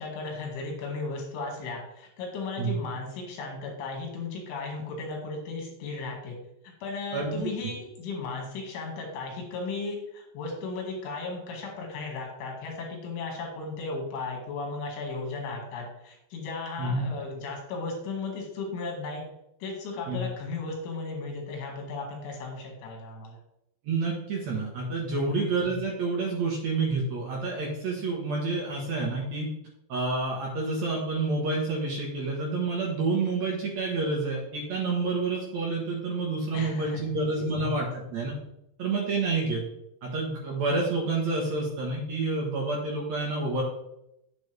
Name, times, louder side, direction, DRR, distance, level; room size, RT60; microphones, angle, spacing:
voice 1, 0.0-6.4 6.8-19.2 19.6-23.4 25.2-25.4 36.5-37.3, left 3 dB, 85° left, 0 dB, 4.6 m, -35 dB
voice 2, 7.1-7.4 16.8-17.1 20.1-20.3 23.8-29.5 29.9-38.3 38.8-39.6 40.0-43.6, right 3 dB, 75° right, -2 dB, 1.6 m, -28 dB
8.3 x 8.1 x 3.4 m, 0.82 s
omnidirectional pair, 5.3 m